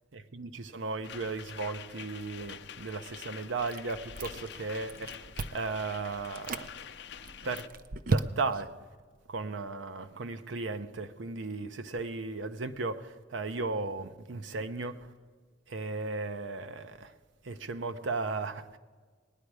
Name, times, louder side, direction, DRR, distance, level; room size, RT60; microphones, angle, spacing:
voice 1, 0.1-6.7 7.4-7.7 8.1-8.7 9.3-15.1 15.7-17.1 17.4-18.8, right 3 dB, 85° right, 0.7 m, -36 dB
sound 1, 1.0-7.7, left 7 dB, 65° left, 0.5 m, -46 dB
Chewing mastication, 3.7-4.6 4.9-5.7 6.2-6.7 7.2-8.7, right 3 dB, 50° right, 0.4 m, -33 dB
19.5 x 9.8 x 4.8 m
head